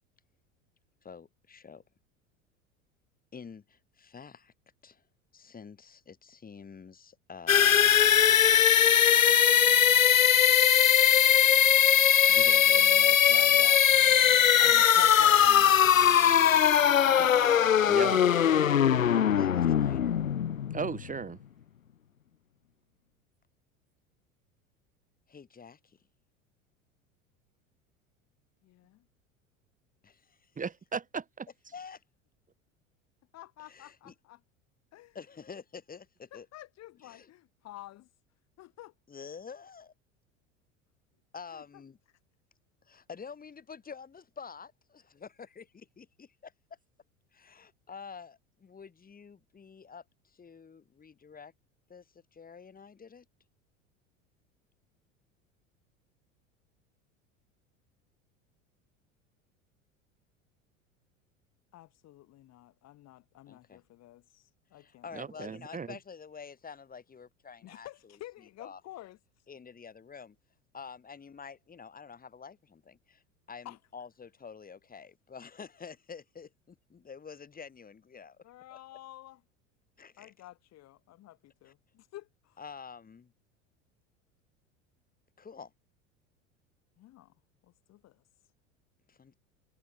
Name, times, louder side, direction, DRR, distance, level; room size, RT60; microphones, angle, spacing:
voice 1, 1.0-1.8 3.3-4.5 4.8-5.0 5.3-8.1 12.3-15.7 16.8-17.8 18.9-20.2 25.3-26.0 30.0-30.5 31.7-32.0 33.6-34.1 35.1-36.5 37.0-37.3 39.1-39.9 41.3-42.0 42.9-46.5 47.3-51.5 51.9-53.2 63.5-63.8 64.7-68.2 68.6-68.8 69.5-70.4 70.7-73.2 73.5-78.4 78.7-78.8 80.0-80.3 81.7-81.8 82.6-83.3 85.4-85.7 89.1-89.3, left 6 dB, 20° left, 7.7 m, -48 dB
sound 1, 7.5-21.2, left 9 dB, 80° left, 0.7 m, -21 dB
voice 2, 17.9-18.3 20.7-21.4 30.6-31.5 65.1-66.0, right 5 dB, 20° right, 3.8 m, -36 dB
voice 3, 28.6-29.1 33.3-34.4 34.9-35.2 36.3-38.1 38.6-38.9 41.5-41.8 61.7-65.5 67.6-69.2 73.6-73.8 78.4-79.4 80.2-82.6 87.0-87.3 87.6-88.2, left 15 dB, 40° left, 4.2 m, -51 dB
figure-of-eight pair, 75°, 39 cm